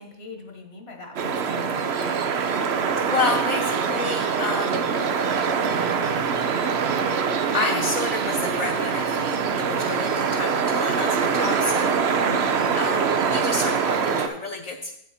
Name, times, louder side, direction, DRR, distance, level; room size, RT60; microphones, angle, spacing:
voice 1, 0.0-1.9 12.2-12.5, left 3 dB, 80° left, 3 dB, 1.7 m, -40 dB
sound 1, 1.2-14.3, right 6 dB, 90° right, 1.0 m, -24 dB
voice 2, 3.0-4.8 7.5-12.0 12.7-14.9, left 3 dB, 45° left, 2 dB, 0.7 m, -30 dB
8.3 x 8.3 x 4.2 m, 0.77 s
omnidirectional pair, 1.0 m